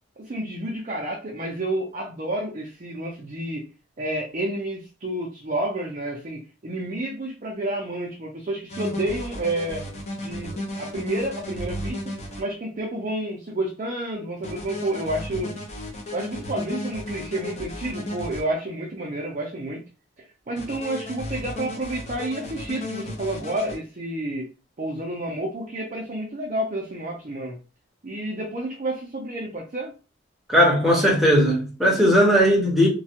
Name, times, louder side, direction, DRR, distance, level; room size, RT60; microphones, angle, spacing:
voice 1, 0.2-3.7 4.0-9.8 10.2-12.0 12.4-15.5 16.1-19.8 20.2-24.5 24.8-27.6 28.0-29.9, right 1 dB, 35° right, 0.5 m, -30 dB
sound 1, 8.7-12.4 14.4-18.4 20.6-23.8, left 1 dB, 35° left, 0.8 m, -34 dB
voice 2, 30.5-32.9, equal, ahead, 0.9 m, -18 dB
3.1 x 2.3 x 2.8 m
head